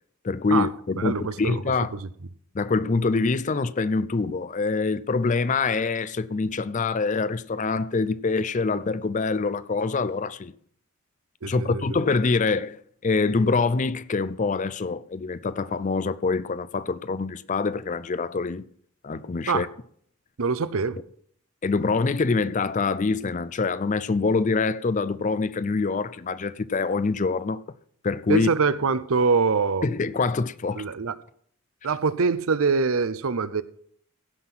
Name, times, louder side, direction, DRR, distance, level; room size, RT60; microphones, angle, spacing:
voice 1, 0.2-2.0 2.5-10.5 11.4-18.7 19.0-19.7 21.6-27.6 28.0-28.5 29.8-30.9, left 4 dB, 35° left, 0.4 m, -25 dB
voice 2, 1.0-1.6 1.9-2.1 11.4-12.0 19.5-19.7 20.4-21.0 28.3-29.9 30.7-31.1 31.8-33.6, right 5 dB, 70° right, 0.7 m, -24 dB
16.0 x 5.8 x 6.0 m
head